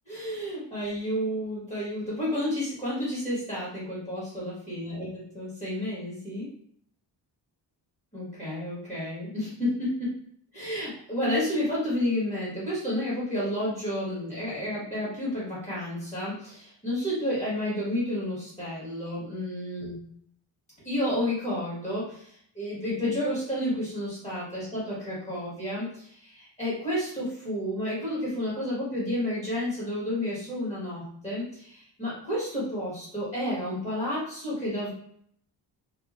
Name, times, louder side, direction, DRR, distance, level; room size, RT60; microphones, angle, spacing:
voice 1, 0.1-6.5 8.1-10.1 10.5-20.0 20.8-34.9, left 1 dB, 15° left, -8 dB, 1.4 m, -31 dB
3.1 x 2.5 x 2.4 m, 0.65 s
wide cardioid pair, 135°, 42 cm